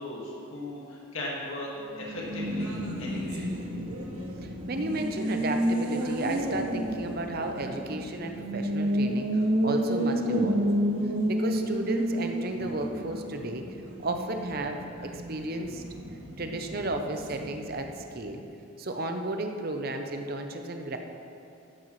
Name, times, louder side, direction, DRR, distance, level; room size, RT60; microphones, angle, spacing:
voice 1, 0.0-1.7 2.0-3.5, left 1 dB, 70° left, -4 dB, 1.8 m, -37 dB
Race car auto racing, 1.9-18.1, equal, 85° right, 1.3 m, -31 dB
voice 2, 4.4-10.7 11.3-13.6 14.0-15.8 16.4-18.4 18.8-21.0, right 2 dB, 45° right, 5 dB, 0.7 m, -33 dB
12.5 x 9.7 x 3.2 m, 2.8 s
head